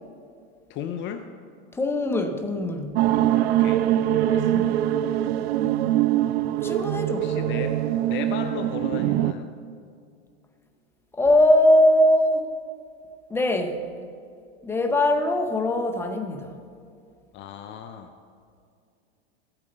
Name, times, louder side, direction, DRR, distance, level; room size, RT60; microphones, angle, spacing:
voice 1, 0.7-1.3 3.2-3.8 4.2-4.6 7.1-9.5 17.3-18.1, left 8 dB, 35° left, 7 dB, 0.6 m, -36 dB
voice 2, 1.7-3.0 4.5-4.7 6.6-7.3 11.2-12.5 13.3-13.8 14.6-16.6, left 1 dB, 5° left, 5 dB, 0.8 m, -21 dB
sound 1, 3.0-9.3, right 12 dB, 70° right, 0.5 m, -23 dB
15.0 x 8.9 x 3.9 m, 2.4 s
hypercardioid pair, 115°, 32 cm